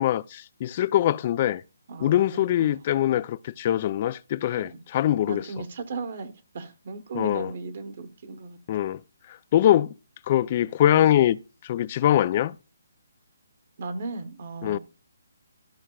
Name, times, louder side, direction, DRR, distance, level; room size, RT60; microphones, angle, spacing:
voice 1, 0.0-1.6 2.0-5.4 7.1-7.5 8.7-9.0 9.5-9.9 10.3-11.4 11.6-12.5 14.6-14.8, left 12 dB, 35° left, 0.3 m, -23 dB
voice 2, 1.9-2.9 4.5-4.8 5.3-8.6 13.8-14.8, right 3 dB, 50° right, 1.0 m, -36 dB
13.5 x 6.2 x 2.3 m
hypercardioid pair, 160°, 0 cm